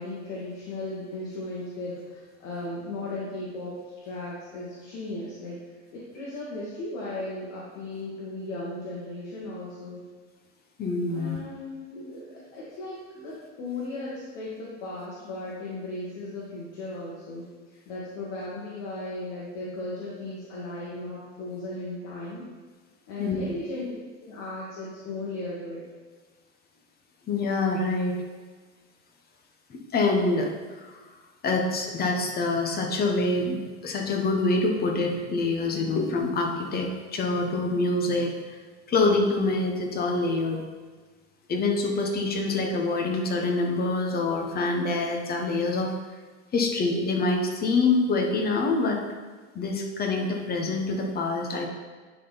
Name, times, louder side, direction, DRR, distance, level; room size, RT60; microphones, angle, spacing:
voice 1, 0.0-5.6 5.9-10.1 11.1-22.5 23.1-23.9 24.2-25.9, left 2 dB, 55° left, -6 dB, 1.8 m, -36 dB
voice 2, 10.8-11.4 23.2-23.4 27.3-28.2 29.7-30.5 30.8-31.0 31.4-38.3 38.9-40.6 41.5-45.9 46.5-49.0 49.5-51.7, left 3 dB, 25° left, 2 dB, 1.1 m, -26 dB
9.8 x 4.0 x 4.1 m, 1.4 s
supercardioid pair, 125°, 37 cm